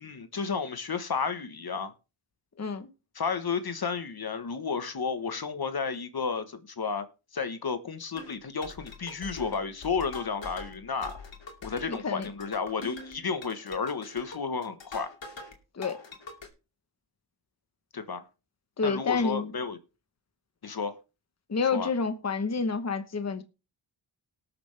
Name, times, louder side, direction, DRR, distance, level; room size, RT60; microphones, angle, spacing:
voice 1, 0.0-1.9 3.1-7.1 7.3-11.2 11.6-15.1 17.9-18.2 18.8-19.8 20.6-21.0 21.7-21.9, left 5 dB, 55° left, 1.3 m, -32 dB
voice 2, 2.6-2.9 11.9-12.3 15.7-16.0 18.8-19.5 21.5-23.4, left 4 dB, 35° left, 1.1 m, -29 dB
sound 1, 8.2-15.6 15.8-16.5, left 3 dB, 80° left, 2.6 m, -44 dB
19.0 x 7.0 x 3.3 m
wide cardioid pair, 75°, 45 cm